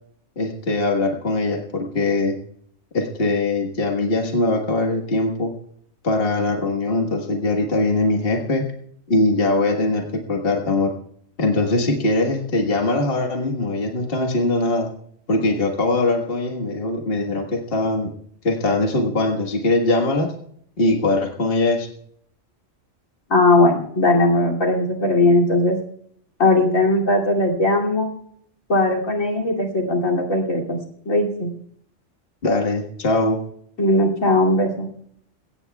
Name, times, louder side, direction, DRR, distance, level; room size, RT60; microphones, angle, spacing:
voice 1, 0.4-2.4 2.9-5.5 6.0-8.6 9.1-10.9 11.4-14.9 15.3-18.1 18.4-20.3 20.8-21.9 32.4-33.4, left 2 dB, 45° left, 2 dB, 1.8 m, -21 dB
voice 2, 23.3-25.8 26.4-28.1 28.7-30.8 31.0-31.5 33.8-34.9, left 2 dB, 80° left, 3 dB, 3.2 m, -18 dB
21.5 x 17.0 x 2.3 m, 0.65 s
omnidirectional pair, 1.4 m